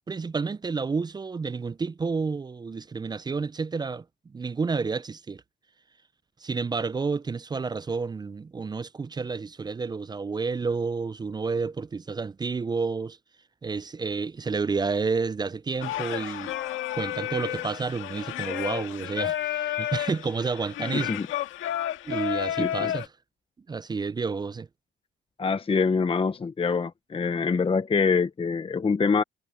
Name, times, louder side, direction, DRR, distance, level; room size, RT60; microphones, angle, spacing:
voice 1, 0.1-4.0 4.3-5.4 6.4-13.2 13.6-16.5 17.0-21.2 22.1-23.1 23.7-24.7, right 4 dB, 20° right, 0.4 m, -30 dB
Singing, 15.8-23.1, left 12 dB, 90° left, 1.7 m, -31 dB
voice 2, 20.9-21.3 22.6-22.9 25.4-29.2, left 5 dB, 30° left, 0.9 m, -25 dB
cardioid pair, 90°, 20 cm